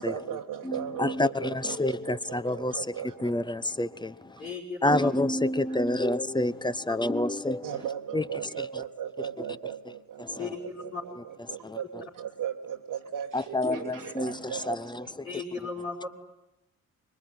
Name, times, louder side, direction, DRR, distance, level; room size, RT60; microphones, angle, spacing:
voice 1, 0.0-3.4 4.4-4.5 5.7-5.8 7.6-15.2, right 9 dB, 55° right, 1.6 m, -37 dB
voice 2, 0.6-2.8 3.2-4.4 4.8-7.7 8.1-8.2 10.2-10.5 11.6-11.8 13.3-15.3, left 1 dB, 10° left, 1.0 m, -28 dB
voice 3, 4.4-5.1 10.4-11.0 15.2-16.1, left 4 dB, 80° left, 4.9 m, -36 dB
25.5 x 22.0 x 9.9 m
figure-of-eight pair, 40°, 42 cm